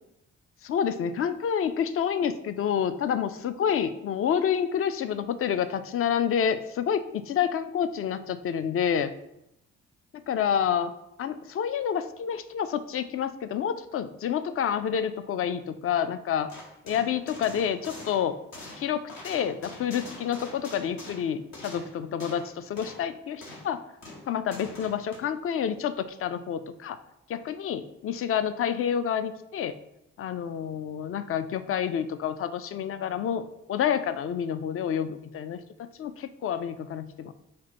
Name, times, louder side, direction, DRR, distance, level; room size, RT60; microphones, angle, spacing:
voice 1, 0.6-9.1 10.3-10.9 11.2-16.5 16.9-18.3 18.8-23.8 24.3-27.0 27.3-29.8 30.2-37.3, left 8 dB, 40° left, 12 dB, 0.4 m, -28 dB
sound 1, 16.5-22.5 22.8-23.0 23.4-23.8 24.0-25.2, left 2 dB, 65° left, 1.2 m, -44 dB
4.3 x 2.2 x 4.1 m, 0.83 s
hypercardioid pair, 40°, 37 cm